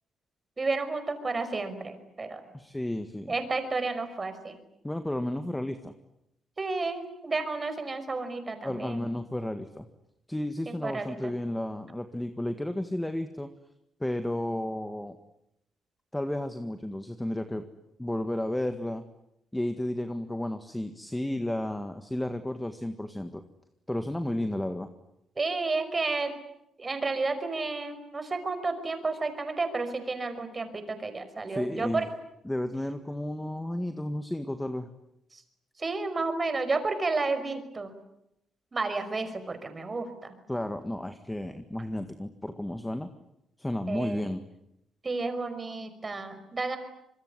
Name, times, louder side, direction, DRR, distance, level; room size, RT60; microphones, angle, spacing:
voice 1, 0.6-2.4 3.3-4.6 6.6-9.0 10.7-11.3 25.4-26.3 26.8-32.1 35.3-35.4 35.8-37.9 38.7-40.4 43.9-44.2 45.0-46.8, right 3 dB, 30° right, 9 dB, 5.4 m, -31 dB
voice 2, 2.5-3.3 4.8-5.9 8.6-9.9 10.3-13.5 14.0-15.2 16.1-17.7 18.0-19.0 19.5-23.4 23.9-24.9 31.5-32.1 32.5-34.9 40.5-43.1 43.6-44.4, left 1 dB, 10° left, 8 dB, 1.8 m, -32 dB
26.0 x 22.5 x 9.9 m, 0.81 s
cardioid pair, 90°, 0 cm